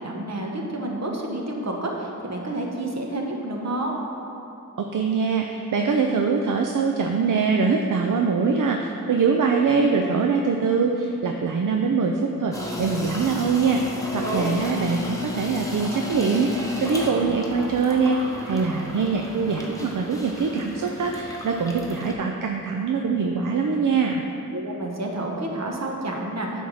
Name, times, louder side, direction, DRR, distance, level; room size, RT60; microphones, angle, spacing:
voice 1, 0.0-3.9 14.2-14.5 24.5-26.6, right 1 dB, 55° right, 0 dB, 1.2 m, -29 dB
voice 2, 4.8-18.2 18.4-24.2, right 5 dB, 75° right, 2 dB, 0.5 m, -23 dB
sound 1, 12.5-22.1, left 2 dB, 10° left, 1.2 m, -34 dB
8.6 x 3.6 x 6.3 m, 2.8 s
wide cardioid pair, 60°, 32 cm